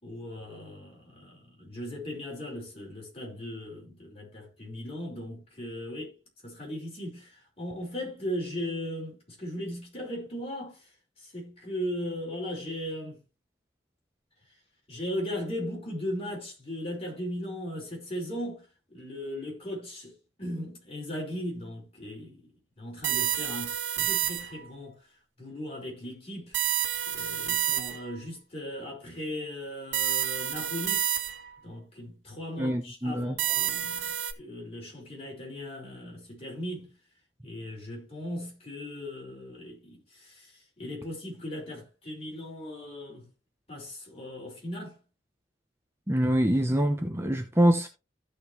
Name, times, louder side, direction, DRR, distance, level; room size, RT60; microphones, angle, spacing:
voice 1, 0.0-6.2 6.4-10.8 11.2-13.2 14.9-22.5 22.8-25.0 25.4-26.6 27.1-31.1 31.6-36.9 37.4-43.3 43.7-45.0, left 1 dB, 30° left, 5.3 m, -38 dB
sound 1, 23.0-24.7 26.5-28.2 29.9-31.6 33.4-34.3, right 10 dB, 80° right, 2.0 m, -29 dB
voice 2, 32.6-33.3 46.1-47.9, right 1 dB, 15° right, 0.9 m, -25 dB
15.5 x 5.1 x 3.1 m
head